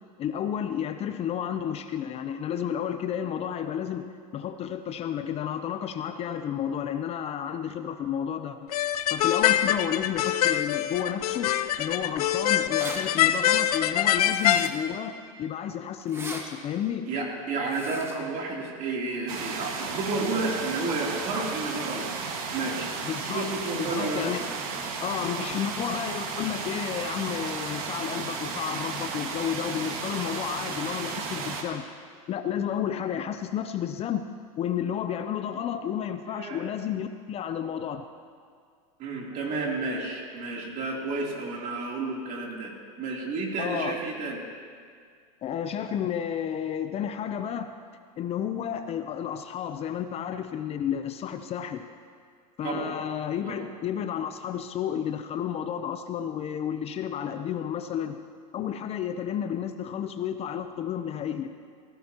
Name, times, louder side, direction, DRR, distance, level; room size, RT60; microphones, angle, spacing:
voice 1, 0.2-8.7 9.1-11.5 11.8-15.1 15.4-17.1 23.0-23.5 23.7-24.5 25.0-31.8 32.3-34.2 34.6-38.0 43.6-44.0 45.4-47.7 48.2-51.9 52.6-58.2 58.5-61.5, left 9 dB, 35° left, 9 dB, 0.6 m, -31 dB
sound 1, 8.7-14.7, left 11 dB, 90° left, 0.5 m, -24 dB
sound 2, 12.3-12.4 12.5-13.0 14.3-14.9 16.0-16.4 17.6-18.2, right 2 dB, 15° right, 1.5 m, -39 dB
voice 2, 17.1-22.1 22.5-22.9 23.3-24.2 29.2-29.4 36.3-36.7 39.0-42.7 43.0-44.4 52.6-52.9 53.4-53.6, right 3 dB, 45° right, -2 dB, 3.2 m, -31 dB
sound 3, 19.3-31.6, right 5 dB, 70° right, 1.8 m, -34 dB
17.0 x 15.5 x 2.9 m, 2.1 s
supercardioid pair, 115°, 19 cm